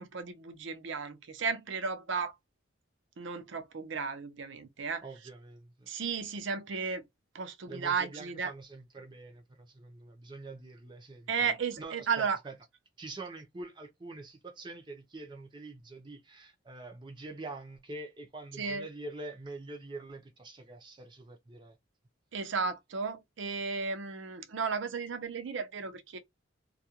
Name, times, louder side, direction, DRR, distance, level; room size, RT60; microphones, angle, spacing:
voice 1, 0.0-2.3 3.2-5.0 5.9-7.0 7.3-8.5 11.3-12.4 18.6-18.9 22.3-26.2, right 5 dB, 70° right, 0.5 m, -34 dB
voice 2, 5.0-5.9 7.7-11.3 11.8-12.5 13.0-21.8, right 2 dB, 25° right, 0.5 m, -45 dB
2.4 x 2.2 x 2.8 m
head